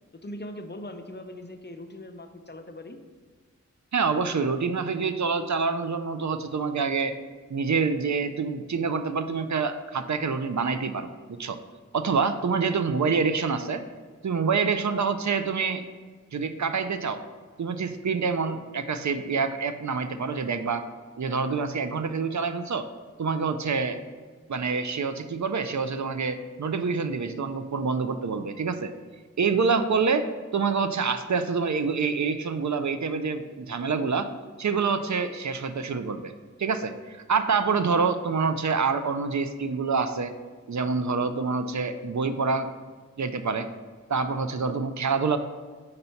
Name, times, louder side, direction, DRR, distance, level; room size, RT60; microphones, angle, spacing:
voice 1, 0.2-3.0, left 1 dB, 35° left, 6 dB, 0.6 m, -40 dB
voice 2, 3.9-7.1 7.5-11.6 11.9-13.8 14.2-15.8 16.3-17.2 17.6-20.8 21.2-22.9 23.2-24.0 24.5-28.9 29.4-30.2 30.5-34.3 34.6-36.3 36.6-40.3 40.7-42.7 43.2-43.7 44.1-45.4, right 5 dB, 70° right, 8 dB, 0.5 m, -26 dB
5.3 x 4.1 x 5.7 m, 1.5 s
wide cardioid pair, 55°, 30 cm